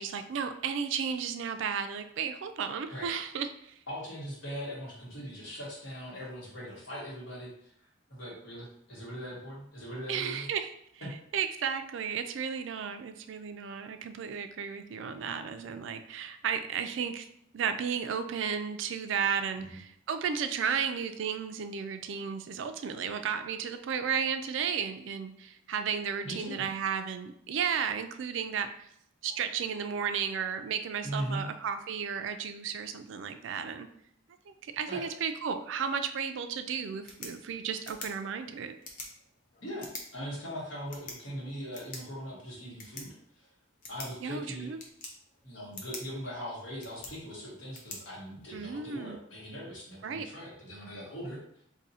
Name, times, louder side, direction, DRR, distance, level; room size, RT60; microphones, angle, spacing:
voice 1, 0.0-3.7 10.1-10.7 11.0-11.1 11.3-17.3 17.5-28.9 29.2-33.9 34.5-38.7 44.2-44.8 48.5-49.2 50.0-50.3, right 7 dB, 70° right, 8 dB, 0.3 m, -33 dB
voice 2, 3.9-7.7 8.1-10.5 11.0-11.1 19.5-19.8 20.6-20.8 26.2-26.6 31.0-31.5 34.9-35.0 39.6-43.5 43.9-44.7 45.4-51.6, equal, 75° left, -5 dB, 1.5 m, -40 dB
sound 1, 36.9-48.9, left 3 dB, 45° left, 0.7 m, -48 dB
2.7 x 2.6 x 4.1 m, 0.70 s
head